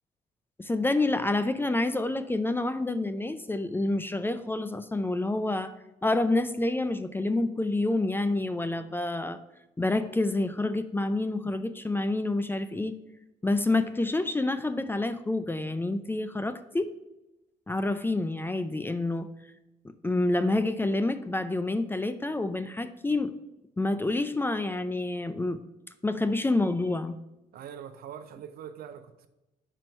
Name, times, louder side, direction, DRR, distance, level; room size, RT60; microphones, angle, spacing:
voice 1, 0.6-5.8 6.0-9.4 9.8-12.9 13.4-16.9 17.7-19.3 20.0-23.3 23.8-25.6 26.0-27.2, left 2 dB, 15° left, 11 dB, 0.4 m, -28 dB
voice 2, 27.5-29.3, right 8 dB, 65° right, 10 dB, 0.6 m, -43 dB
4.4 x 4.4 x 5.3 m, 0.96 s
supercardioid pair, 65°, 16 cm